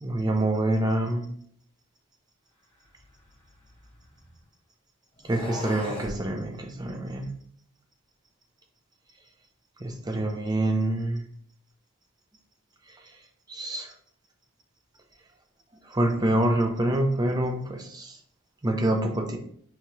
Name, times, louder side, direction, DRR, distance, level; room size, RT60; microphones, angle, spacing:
voice 1, 0.0-1.3 5.2-7.3 9.8-11.2 13.5-13.9 15.9-18.1 18.6-19.4, right 1 dB, 20° right, 3 dB, 0.5 m, -26 dB
sound 1, 2.9-4.4 5.2-6.2, left 1 dB, 25° left, 0.9 m, -39 dB
4.9 x 2.8 x 2.9 m, 0.62 s
head